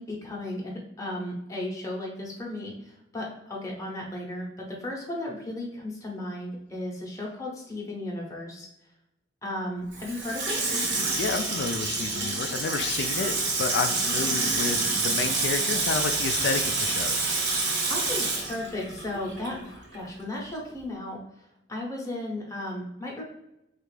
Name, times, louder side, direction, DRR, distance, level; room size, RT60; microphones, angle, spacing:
voice 1, 0.0-8.7 9.4-10.6 17.9-21.2 21.7-23.2, left 1 dB, 20° left, -3 dB, 0.7 m, -35 dB
Water tap faucet / Sink (filling or washing), 9.9-19.6 19.9-20.0, right 3 dB, 70° right, 0.8 m, -28 dB
voice 2, 11.2-17.2, left 5 dB, 70° left, 7 dB, 0.3 m, -30 dB
3.4 x 2.4 x 3.2 m, 0.85 s
head